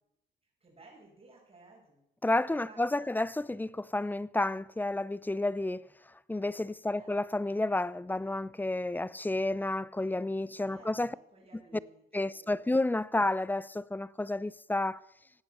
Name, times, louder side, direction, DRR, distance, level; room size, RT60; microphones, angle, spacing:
voice 1, 0.6-3.1 6.9-7.2 10.6-12.8, right 3 dB, 30° right, 6.0 m, -57 dB
voice 2, 2.2-5.9 6.3-11.2 12.1-15.0, left 2 dB, 10° left, 0.5 m, -31 dB
17.0 x 9.2 x 6.6 m
cardioid pair, 90°, 20 cm